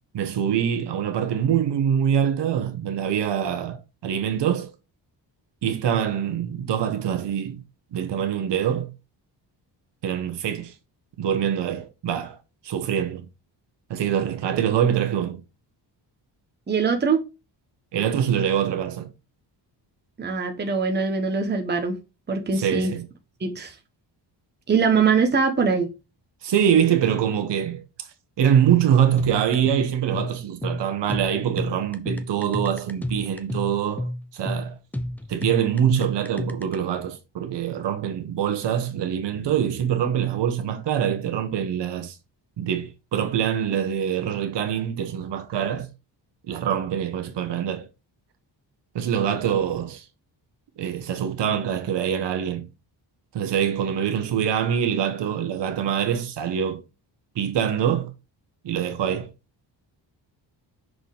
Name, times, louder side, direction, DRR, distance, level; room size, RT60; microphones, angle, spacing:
voice 1, 0.1-4.7 5.6-7.6 7.9-8.9 10.0-10.7 11.2-12.4 12.6-13.2 13.9-15.4 17.9-19.1 22.6-23.1 26.4-27.8 28.4-34.8 35.3-42.2 42.6-45.9 46.5-47.9 48.9-50.0 50.8-52.7 53.3-56.8 57.3-58.1 58.6-59.3, right 9 dB, 70° right, 1.2 m, -24 dB
voice 2, 16.7-17.2 20.2-22.0 22.3-22.9 23.4-23.7 24.7-25.9, right 5 dB, 25° right, 1.0 m, -22 dB
sound 1, 29.2-36.8, left 1 dB, 5° left, 0.4 m, -31 dB
6.1 x 5.0 x 3.4 m
wide cardioid pair, 175°, 44 cm